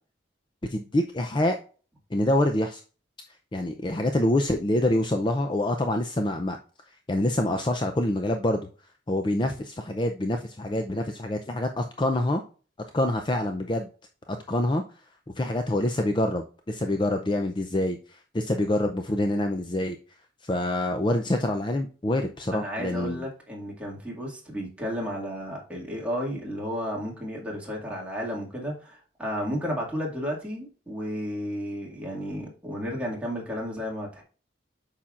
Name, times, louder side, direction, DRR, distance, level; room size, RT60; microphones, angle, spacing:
voice 1, 0.7-1.6 2.1-2.8 3.5-6.6 7.1-8.7 9.1-12.4 12.9-13.9 14.5-14.8 15.4-20.0 20.4-23.2, left 1 dB, 25° left, 5 dB, 0.5 m, -26 dB
voice 2, 22.5-34.2, equal, 5° right, -3 dB, 2.1 m, -33 dB
8.5 x 5.8 x 2.5 m, 0.38 s
head